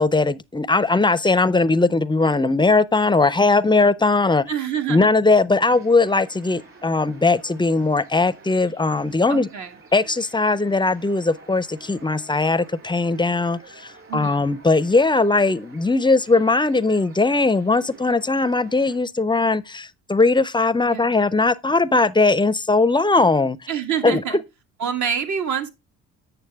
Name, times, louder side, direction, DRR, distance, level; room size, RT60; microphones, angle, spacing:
voice 1, 0.0-4.4 4.9-9.5 9.9-23.6 24.0-24.4, left 3 dB, 15° left, 0.5 m, -19 dB
voice 2, 4.5-5.1 9.3-9.7 14.1-14.4 20.9-21.1 23.7-24.4 24.8-25.7, right 8 dB, 60° right, 1.7 m, -26 dB
sound 1, 5.6-19.0, right 3 dB, 40° right, 4.3 m, -49 dB
8.5 x 6.8 x 3.4 m
supercardioid pair, 75°, 33 cm